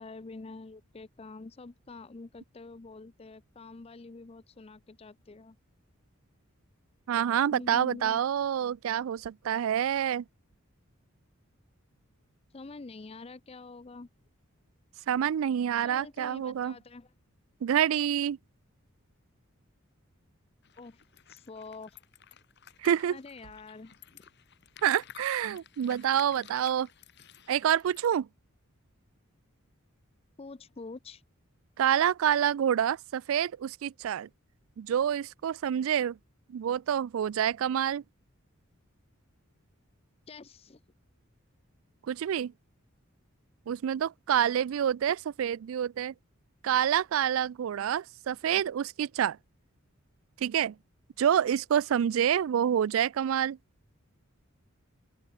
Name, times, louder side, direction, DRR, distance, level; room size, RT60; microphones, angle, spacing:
voice 1, 0.0-5.6 7.5-8.2 12.5-14.1 15.8-17.1 20.8-21.0 21.3-22.0 23.1-24.2 30.4-31.2 40.3-40.8, left 3 dB, 30° left, 0.5 m, -46 dB
voice 2, 7.1-10.2 15.1-16.7 17.6-18.4 22.8-23.2 24.8-26.9 27.5-28.3 31.8-34.3 34.8-36.2 36.5-38.0 42.1-42.5 43.7-46.1 46.6-49.4 50.4-50.8 51.2-53.6, right 9 dB, 75° right, 0.3 m, -27 dB
sound 1, 20.6-28.2, left 9 dB, 50° left, 2.3 m, -54 dB
open air
head